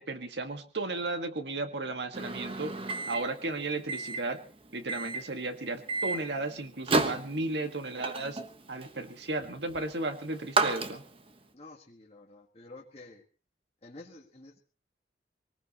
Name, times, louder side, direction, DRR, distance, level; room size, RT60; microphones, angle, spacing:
voice 1, 0.0-2.7 3.1-4.4 4.7-8.4 8.7-11.0, right 2 dB, 75° right, 7 dB, 1.7 m, -34 dB
Microwave oven, 2.1-11.4, right 3 dB, 30° right, 1.2 m, -34 dB
voice 2, 11.5-13.2 13.8-14.6, left 2 dB, 35° left, -2 dB, 1.7 m, -50 dB
22.5 x 19.0 x 3.0 m, 0.36 s
head